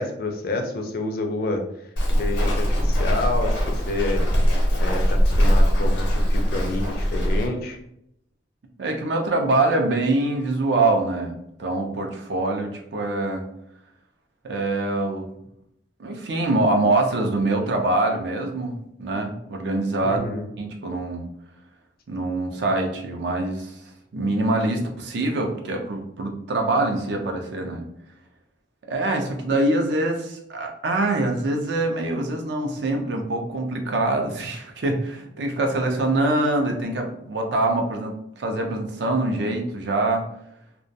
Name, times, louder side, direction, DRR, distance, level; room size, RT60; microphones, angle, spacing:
voice 1, 0.0-1.6 2.2-4.2 4.8-7.8 20.0-20.5, left 2 dB, 55° left, 4 dB, 0.4 m, -28 dB
Walk footsteps, 2.0-7.5, equal, 85° left, 0.7 m, -21 dB
voice 2, 8.8-13.5 14.4-15.3 16.0-20.2 20.6-21.3 22.1-23.8 24.1-27.8 28.9-40.2, right 2 dB, 65° right, 3 dB, 0.4 m, -24 dB
2.2 x 2.1 x 2.6 m, 0.76 s
head